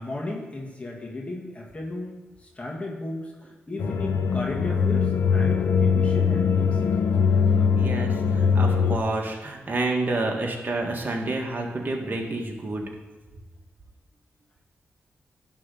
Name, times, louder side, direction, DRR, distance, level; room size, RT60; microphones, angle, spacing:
voice 1, 0.0-7.7, left 2 dB, 30° left, -2 dB, 1.8 m, -35 dB
sound 1, 3.8-9.0, left 6 dB, 80° left, 0.7 m, -22 dB
voice 2, 7.8-12.8, right 2 dB, 45° right, 0 dB, 1.7 m, -29 dB
11.0 x 3.7 x 6.8 m, 1.2 s
cardioid pair, 55°, 5 cm